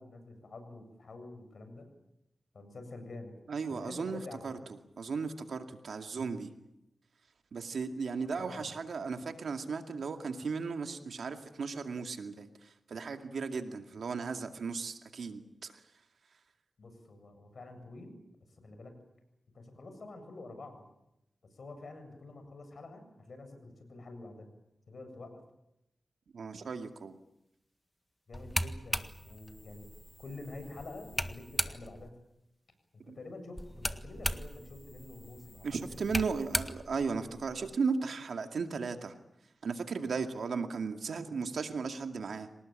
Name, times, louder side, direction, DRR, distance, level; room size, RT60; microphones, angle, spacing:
voice 1, 0.0-1.9 2.5-3.3 3.7-4.5 8.4-8.7 16.8-18.2 18.6-18.9 19.5-20.9 21.5-24.5 24.9-25.3 28.3-29.9 30.2-32.1 32.9-36.1, left 2 dB, 70° left, 7 dB, 7.5 m, -47 dB
voice 2, 3.5-4.5 5.0-6.5 7.5-12.5 12.9-15.7 26.3-27.2 33.1-33.2 35.6-39.1 39.6-42.5, right 5 dB, 80° right, 6 dB, 2.2 m, -36 dB
sound 1, 28.3-32.1 33.6-37.8, equal, 5° left, 1.7 m, -38 dB
26.5 x 19.0 x 9.0 m, 0.85 s
cardioid pair, 50°, 0 cm